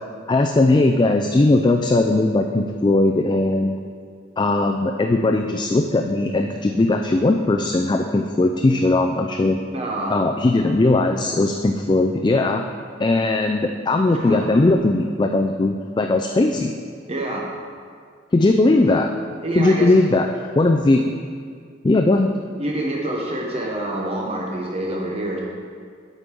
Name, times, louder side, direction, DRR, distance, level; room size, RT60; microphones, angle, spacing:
voice 1, 0.3-3.8 4.4-9.6 10.1-12.6 13.0-16.7 18.3-19.1 19.6-20.3 20.6-21.0 21.8-22.3, left 2 dB, 25° left, 4 dB, 0.3 m, -18 dB
voice 2, 9.7-10.2 14.1-14.5 17.1-17.5 19.4-19.9 22.6-25.4, right 1 dB, 30° right, -2 dB, 0.9 m, -26 dB
8.0 x 5.3 x 7.3 m, 2.1 s
head